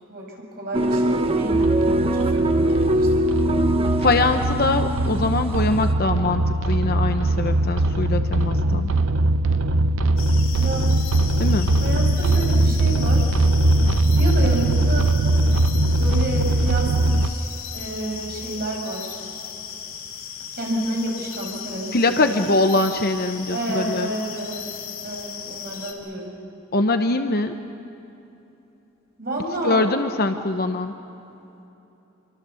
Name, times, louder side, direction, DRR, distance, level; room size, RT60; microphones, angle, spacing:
voice 1, 0.1-1.7 2.0-3.3 10.6-10.9 11.8-13.3 14.0-15.2 16.0-19.2 20.5-22.0 22.2-22.4 23.5-26.3 29.2-29.9, right 1 dB, 50° right, 0 dB, 6.0 m, -30 dB
sound 1, 0.7-5.9, right 1 dB, 30° right, 1.0 m, -22 dB
sound 2, 1.5-17.3, right 1 dB, 70° right, 0.7 m, -21 dB
voice 2, 4.0-8.9 11.4-11.7 21.9-24.1 26.7-27.5 29.6-30.9, left 2 dB, 50° left, 7 dB, 0.9 m, -22 dB
sound 3, 10.2-25.9, left 8 dB, 90° left, 3.5 m, -37 dB
27.0 x 24.0 x 7.1 m, 3.0 s
head